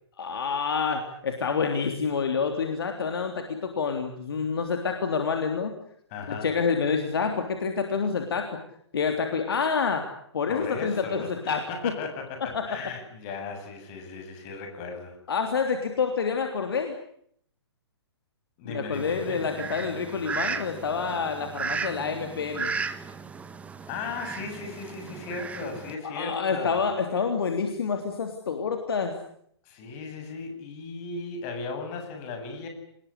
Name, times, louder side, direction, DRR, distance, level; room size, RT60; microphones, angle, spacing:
voice 1, 0.2-5.7 6.3-8.6 8.9-10.0 10.3-11.9 12.5-12.6 15.3-16.9 18.7-22.7 26.0-29.1, left 5 dB, 60° left, 5 dB, 3.5 m, -28 dB
voice 2, 6.1-6.5 10.5-15.1 18.6-19.4 23.9-26.8 29.6-32.7, left 4 dB, 30° left, 5 dB, 7.9 m, -36 dB
Fowl, 18.9-25.9, right 5 dB, 10° right, 1.5 m, -35 dB
26.0 x 21.0 x 9.9 m, 0.67 s
figure-of-eight pair, 120°, 14 cm